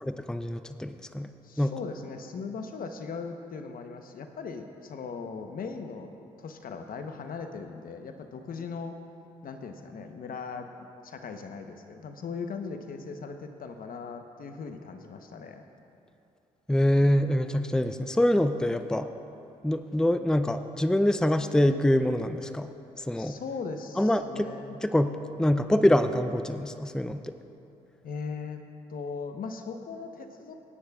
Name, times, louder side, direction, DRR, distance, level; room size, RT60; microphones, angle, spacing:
voice 1, 0.0-1.3 1.6-1.7 16.7-19.1 19.6-22.7 23.0-23.4 24.0-24.5 24.8-27.3, left 1 dB, 5° left, 10 dB, 0.6 m, -25 dB
voice 2, 1.4-6.1 6.4-8.9 9.4-15.6 23.1-24.8 28.0-28.6 28.9-30.5, left 5 dB, 60° left, 6 dB, 1.0 m, -39 dB
25.5 x 9.7 x 2.4 m, 2.7 s
supercardioid pair, 50°, 16 cm